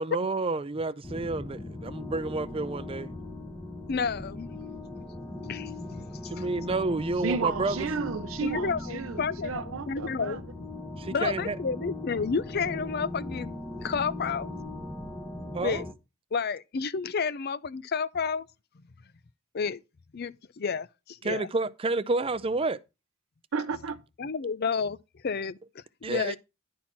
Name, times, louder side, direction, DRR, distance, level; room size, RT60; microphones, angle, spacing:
voice 1, 0.0-3.1 6.3-7.9 11.0-11.6 15.5-15.8 21.2-22.8 26.0-26.4, right 3 dB, 25° right, 0.5 m, -30 dB
sound 1, 1.0-15.9, left 2 dB, 15° left, 1.0 m, -39 dB
voice 2, 3.9-4.8 5.4-6.4 8.4-10.4 11.1-14.5 15.6-15.9 16.3-18.5 19.5-19.8 20.1-21.5 24.2-25.0 25.2-26.4, left 5 dB, 50° left, 0.5 m, -31 dB
voice 3, 7.2-10.4 23.5-24.0, right 5 dB, 80° right, 0.6 m, -33 dB
11.0 x 4.4 x 5.8 m
head